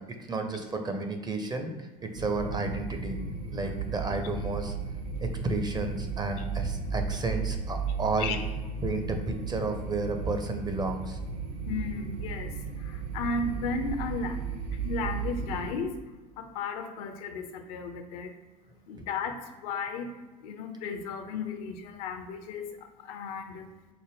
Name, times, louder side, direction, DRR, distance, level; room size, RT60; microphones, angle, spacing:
voice 1, 0.0-3.2 3.5-4.7 5.2-8.3 8.8-11.2, right 3 dB, 20° right, 5 dB, 0.5 m, -32 dB
sound 1, 2.2-15.8, right 5 dB, 65° right, 1.0 m, -35 dB
voice 2, 11.7-12.5 12.8-14.4 14.8-16.0 16.4-18.3 18.9-19.4 19.6-20.1 20.4-22.7 23.0-23.7, left 4 dB, 60° left, 7 dB, 0.5 m, -34 dB
4.7 x 2.1 x 3.5 m, 1.2 s
figure-of-eight pair, 70°, 21 cm